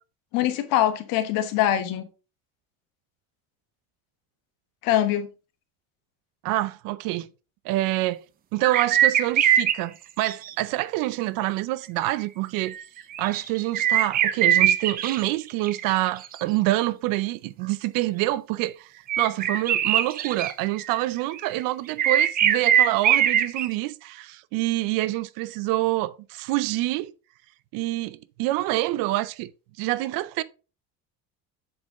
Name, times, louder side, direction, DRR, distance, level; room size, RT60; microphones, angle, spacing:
voice 1, 0.3-2.0 4.8-5.3, left 12 dB, 80° left, 1.3 m, -23 dB
voice 2, 6.4-7.3 7.6-8.2 8.5-12.8 13.2-27.1 27.7-29.5 29.8-30.4, right 17 dB, 75° right, 0.6 m, -26 dB
sound 1, 8.6-9.8 10.2-10.5 12.6-15.3 15.6-16.3 19.1-20.5 20.8-21.6 22.0-23.7, right 10 dB, 30° right, 0.4 m, -22 dB
7.6 x 4.4 x 3.7 m
cardioid pair, 170°, 34 cm